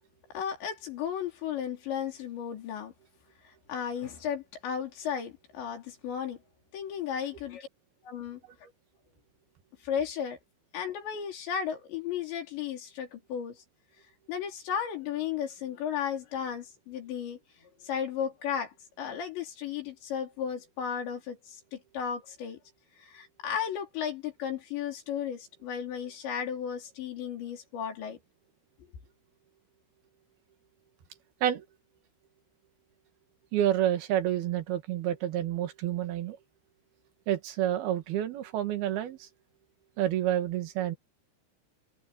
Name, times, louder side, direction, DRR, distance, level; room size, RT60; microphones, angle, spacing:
voice 1, 0.3-2.9 3.4-6.4 6.7-7.7 8.0-8.4 9.8-10.4 10.7-13.6 14.3-22.6 23.0-28.2, left 8 dB, 75° left, 6.1 m, -34 dB
voice 2, 33.5-36.4 37.3-39.3 40.0-41.0, right 11 dB, 65° right, 3.3 m, -29 dB
omnidirectional pair, 5.2 m